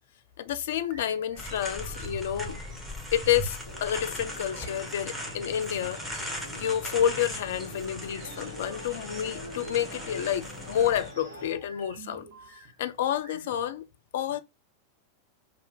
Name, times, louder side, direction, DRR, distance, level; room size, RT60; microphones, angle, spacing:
voice 1, 0.4-2.6 3.1-13.9 14.1-14.4, left 10 dB, 55° left, 0.3 m, -29 dB
sound 1, 0.8-13.7, right 3 dB, 45° right, 1.0 m, -51 dB
sound 2, 1.4-11.1, equal, 5° right, 0.8 m, -39 dB
sound 3, 3.6-11.5, equal, 80° right, 1.0 m, -45 dB
2.6 x 2.1 x 3.5 m
figure-of-eight pair, 90°, 0 cm